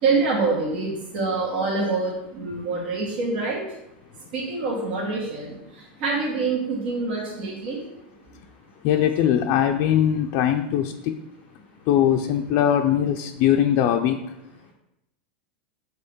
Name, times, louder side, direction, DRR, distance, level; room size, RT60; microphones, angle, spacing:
voice 1, 0.0-3.6 4.3-7.8, right 3 dB, 70° right, -3 dB, 1.9 m, -26 dB
voice 2, 8.8-11.2 11.9-14.2, left 10 dB, 50° left, 3 dB, 0.4 m, -21 dB
5.5 x 3.8 x 5.4 m, 0.88 s
supercardioid pair, 125°, 6 cm